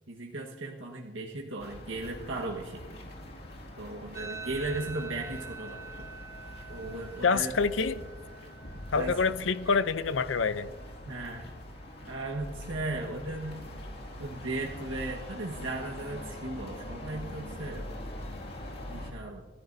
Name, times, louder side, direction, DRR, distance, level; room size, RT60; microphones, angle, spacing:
voice 1, 0.1-2.8 3.8-6.1 6.7-7.5 8.9-9.2 9.7-9.8 11.1-11.5 12.0-13.6 14.2-17.8 18.9-19.5, right 2 dB, 85° right, -2 dB, 1.5 m, -36 dB
sound 1, 1.6-19.1, left 1 dB, 55° left, 2.2 m, -43 dB
sound 2, 4.1-13.2, right 4 dB, 20° right, 1.4 m, -48 dB
voice 2, 7.2-8.0 8.9-10.7, left 5 dB, 75° left, 14 dB, 0.6 m, -26 dB
27.0 x 14.0 x 2.7 m, 1.4 s
head